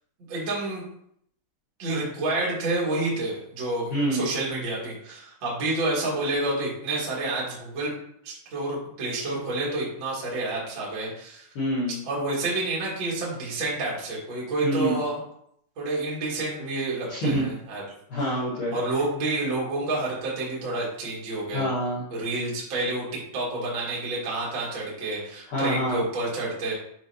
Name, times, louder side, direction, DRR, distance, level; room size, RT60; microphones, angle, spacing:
voice 1, 0.3-0.8 1.8-7.9 8.2-11.5 12.0-15.2 15.7-17.8 18.2-18.3 18.7-21.7 22.1-26.7, right 2 dB, 70° right, -6 dB, 1.1 m, -29 dB
voice 2, 3.9-4.3 11.6-12.0 14.6-15.0 17.1-17.5 18.1-18.7 21.5-22.0 25.5-26.0, equal, 60° left, -10 dB, 2.6 m, -26 dB
7.8 x 4.3 x 2.9 m, 0.71 s
omnidirectional pair, 5.8 m